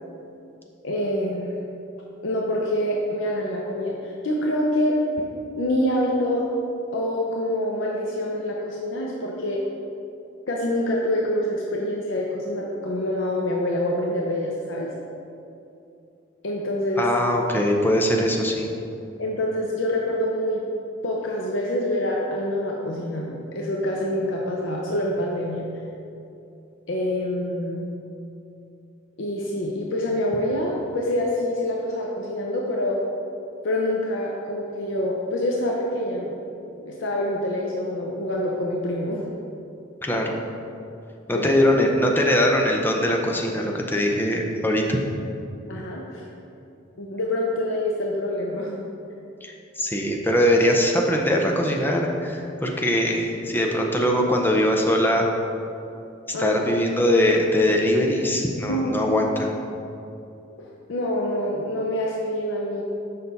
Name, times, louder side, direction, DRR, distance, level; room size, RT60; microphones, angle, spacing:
voice 1, 0.8-1.5 2.2-5.0 5.6-6.5 6.9-9.6 10.5-14.9 16.4-17.1 19.2-20.6 21.0-25.8 26.9-27.9 29.2-33.0 33.6-36.3 36.8-39.3 41.3-41.7 45.7-46.3 47.0-48.9 56.3-56.7 58.7-59.0 60.6-62.8, left 1 dB, 70° left, -2 dB, 0.7 m, -26 dB
voice 2, 17.0-18.7 40.0-40.4 41.3-45.0 49.4-55.3 56.4-59.5, left 1 dB, 10° left, 1 dB, 0.6 m, -21 dB
6.7 x 5.5 x 4.0 m, 2.8 s
head